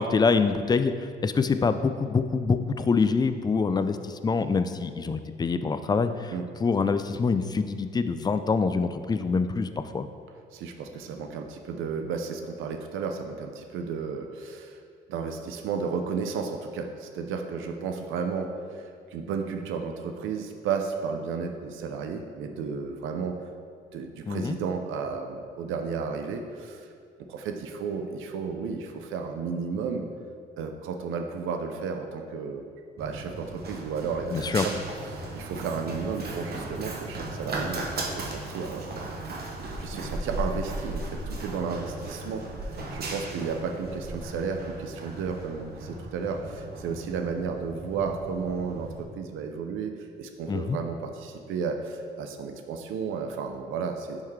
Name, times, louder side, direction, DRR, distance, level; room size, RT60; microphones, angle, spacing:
voice 1, 0.0-6.3 6.6-10.1 24.3-24.6 34.3-34.7 50.5-50.8, left 4 dB, 20° left, 10 dB, 0.3 m, -25 dB
voice 2, 10.5-14.8 15.1-23.4 23.9-26.9 27.3-30.1 30.6-32.6 33.0-34.8 35.1-39.2 39.5-54.2, right 5 dB, 85° right, 5 dB, 0.6 m, -33 dB
Run, 33.0-49.0, right 2 dB, 50° right, 0.9 m, -36 dB
10.0 x 3.6 x 3.2 m, 2.2 s
cardioid pair, 90°, 20 cm